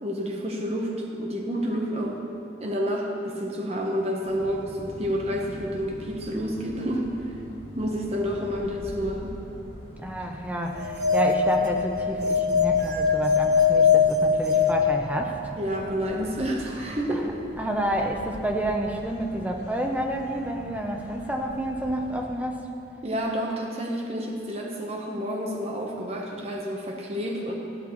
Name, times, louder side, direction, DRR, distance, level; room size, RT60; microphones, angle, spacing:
voice 1, 0.0-2.2 2.6-7.3 7.8-9.4 15.6-17.3 23.0-27.5, equal, 35° right, -1 dB, 1.0 m, -29 dB
sound 1, 4.2-22.3, equal, 30° left, 1.9 m, -44 dB
voice 2, 10.0-15.4 17.1-17.2 17.6-22.6, right 1 dB, 10° right, 2 dB, 0.8 m, -29 dB
sound 2, 10.7-15.6, left 6 dB, 65° right, 0.8 m, -22 dB
14.0 x 12.5 x 3.2 m, 2.8 s
head